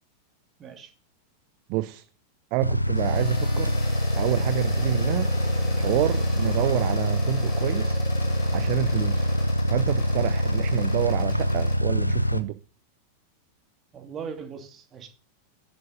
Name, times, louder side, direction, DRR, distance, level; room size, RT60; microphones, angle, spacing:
voice 1, 0.6-0.9 13.9-15.1, right 6 dB, 25° right, 2.5 m, -39 dB
voice 2, 1.7-2.0 2.5-3.8 4.2-5.3 5.8-8.0 8.5-9.3 9.7-12.6, right 19 dB, 45° right, 0.5 m, -28 dB
sound 1, 2.6-12.4, equal, 90° left, 0.7 m, -25 dB
sound 2, 3.0-11.8, left 3 dB, 15° left, 5.8 m, -41 dB
10.5 x 10.5 x 3.9 m
figure-of-eight pair, 90°, 0 cm